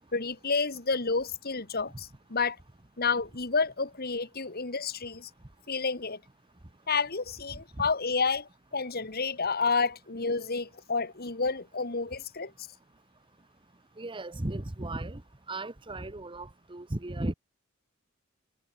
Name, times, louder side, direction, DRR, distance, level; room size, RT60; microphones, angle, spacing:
voice 1, 0.1-2.6 3.0-5.3 5.7-6.2 6.9-12.5, left 4 dB, 50° left, 2.4 m, -30 dB
voice 2, 14.0-15.2 15.5-17.3, right 2 dB, 25° right, 1.1 m, -35 dB
head